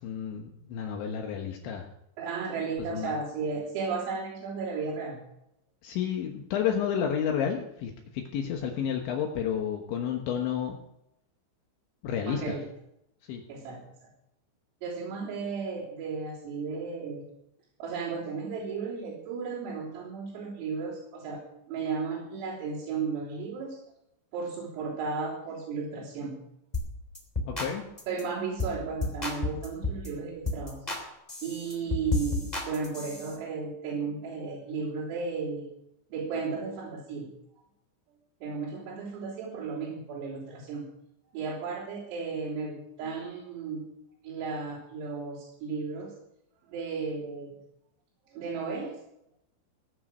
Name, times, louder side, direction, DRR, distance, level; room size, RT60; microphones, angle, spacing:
voice 1, 0.0-1.9 2.8-3.1 5.8-10.8 12.0-12.6 13.3-13.4 27.5-27.9, left 8 dB, 70° left, 2 dB, 3.3 m, -31 dB
voice 2, 2.2-5.2 12.3-12.7 13.5-13.8 14.8-17.3 17.8-23.8 24.3-26.4 28.1-30.8 31.4-35.7 36.1-37.3 38.4-40.9 41.3-43.8 44.2-46.1 46.7-47.6 48.3-49.0, right 4 dB, 85° right, -8 dB, 6.2 m, -34 dB
sound 1, 26.7-26.9 27.1-27.7 28.0-28.2 28.6-28.8 29.0-30.1 30.5-31.0 31.3-33.3, left 2 dB, 10° left, 2.1 m, -31 dB
18.0 x 10.5 x 6.2 m, 0.81 s
omnidirectional pair, 5.9 m